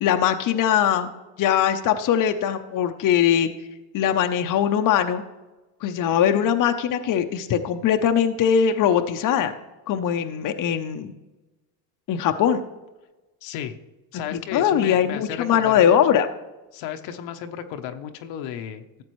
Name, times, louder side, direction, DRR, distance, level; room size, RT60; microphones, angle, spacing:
voice 1, 0.0-1.1 1.4-3.5 3.9-5.2 5.8-9.5 9.9-11.1 12.1-12.6 14.3-16.3, left 9 dB, 40° left, 6 dB, 0.7 m, -21 dB
voice 2, 13.4-13.8 14.1-16.0 16.7-19.0, left 9 dB, 65° left, 7 dB, 0.9 m, -34 dB
14.0 x 7.5 x 3.1 m, 1.1 s
supercardioid pair, 90°, 49 cm